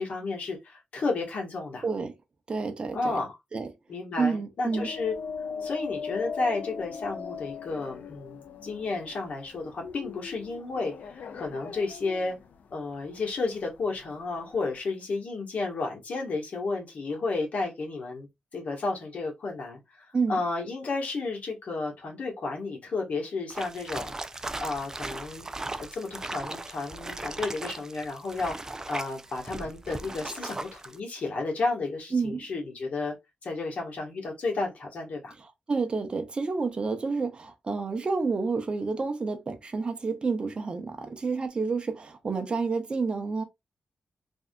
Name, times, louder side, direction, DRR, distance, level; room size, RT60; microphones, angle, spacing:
voice 1, 0.0-1.8 2.9-3.3 3.9-5.1 5.6-12.4 12.7-18.3 18.5-24.1 24.6-25.5 25.8-33.2 33.4-35.3, left 3 dB, 65° left, 1.3 m, -32 dB
voice 2, 2.5-3.1 3.5-3.7 4.2-4.9 20.1-20.4 32.1-32.4 35.7-43.4, right 4 dB, 40° right, 0.7 m, -29 dB
sound 1, 4.7-14.8, left 6 dB, 85° left, 0.4 m, -39 dB
sound 2, 23.5-31.0, right 2 dB, 20° right, 0.3 m, -38 dB
3.4 x 2.7 x 2.2 m
cardioid pair, 90°, 3 cm